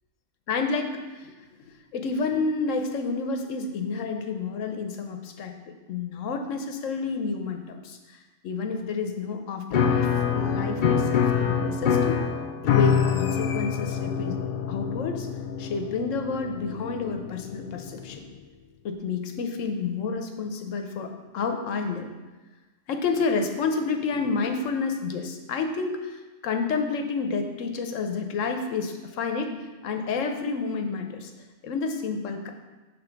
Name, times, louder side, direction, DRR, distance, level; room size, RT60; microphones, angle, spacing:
voice 1, 0.5-1.5 1.9-5.5 5.9-12.2 12.6-14.4 14.7-15.3 15.6-18.2 18.8-22.1 22.9-29.5 29.8-31.3 31.6-32.5, left 4 dB, 90° left, 5 dB, 1.1 m, -30 dB
Piano, 9.7-18.2, left 7 dB, 60° left, 0.5 m, -26 dB
6.9 x 3.7 x 5.8 m, 1.2 s
omnidirectional pair, 1.3 m